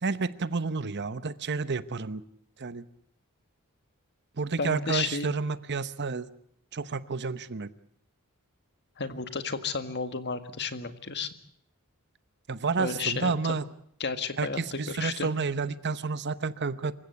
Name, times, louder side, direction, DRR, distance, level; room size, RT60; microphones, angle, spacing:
voice 1, 0.0-2.3 2.6-2.9 4.4-6.3 6.7-7.7 12.5-13.6 14.4-16.9, right 4 dB, 50° right, 15 dB, 0.9 m, -30 dB
voice 2, 4.6-5.3 9.0-11.3 12.8-13.6 14.0-15.3, left 5 dB, 50° left, 10 dB, 1.9 m, -32 dB
27.0 x 15.5 x 8.1 m, 0.69 s
head